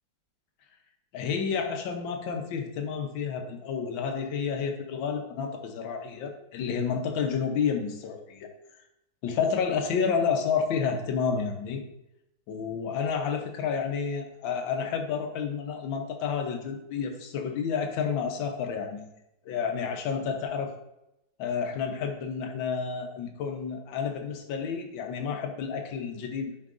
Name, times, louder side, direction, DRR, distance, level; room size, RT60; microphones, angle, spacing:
voice 1, 1.1-8.5 9.2-11.8 12.5-19.1 19.5-20.7 21.4-26.6, left 6 dB, 85° left, 5 dB, 1.6 m, -30 dB
9.6 x 5.1 x 2.5 m, 0.86 s
omnidirectional pair, 2.0 m